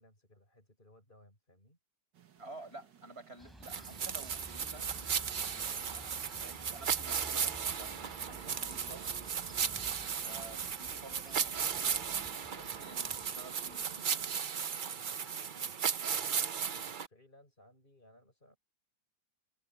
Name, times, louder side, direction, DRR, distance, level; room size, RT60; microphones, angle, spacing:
voice 1, 0.0-1.8 11.9-12.8 14.8-18.6, left 1 dB, 25° left, 6.8 m, -62 dB
sound 1, 2.1-13.7, right 9 dB, 80° right, 2.2 m, -59 dB
voice 2, 2.4-9.3 10.2-14.4, right 2 dB, 35° right, 6.2 m, -52 dB
sound 2, 3.4-14.5, equal, ahead, 4.8 m, -54 dB
sound 3, 3.6-17.1, right 7 dB, 65° right, 0.5 m, -36 dB
omnidirectional pair, 1.9 m